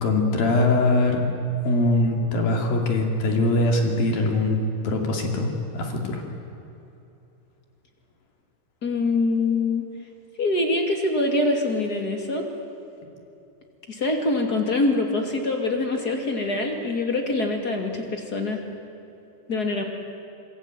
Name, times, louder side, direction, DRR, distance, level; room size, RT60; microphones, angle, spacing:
voice 1, 0.0-1.2 1.6-4.6 4.8-6.2, left 2 dB, 55° left, 2 dB, 4.2 m, -22 dB
voice 2, 8.8-9.9 10.4-12.4 13.9-18.6 19.5-19.8, left 2 dB, 30° left, 3 dB, 2.1 m, -24 dB
26.5 x 22.0 x 9.2 m, 2.9 s
omnidirectional pair, 5.3 m